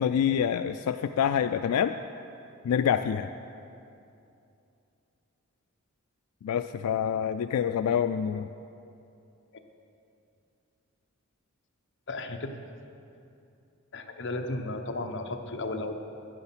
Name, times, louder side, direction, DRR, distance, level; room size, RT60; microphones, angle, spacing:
voice 1, 0.0-1.9 2.6-3.3 6.4-8.5, left 8 dB, 85° left, 10 dB, 0.3 m, -26 dB
voice 2, 12.1-12.5 13.9-15.9, left 2 dB, 55° left, 4 dB, 0.8 m, -34 dB
11.0 x 9.7 x 5.9 m, 2.7 s
head